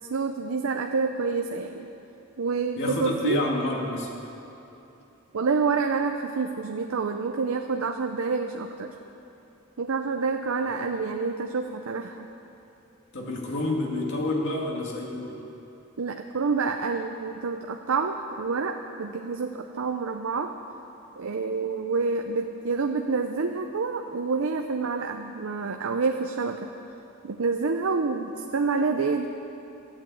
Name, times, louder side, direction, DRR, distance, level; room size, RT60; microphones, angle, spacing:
voice 1, 0.1-1.9 2.4-3.4 5.3-8.9 9.8-12.3 16.0-20.5 21.2-26.7 27.2-29.3, right 4 dB, 75° right, 5 dB, 0.6 m, -28 dB
voice 2, 2.8-4.1 13.1-15.5, left 2 dB, 60° left, -1 dB, 2.2 m, -29 dB
14.0 x 8.6 x 8.5 m, 3.0 s
head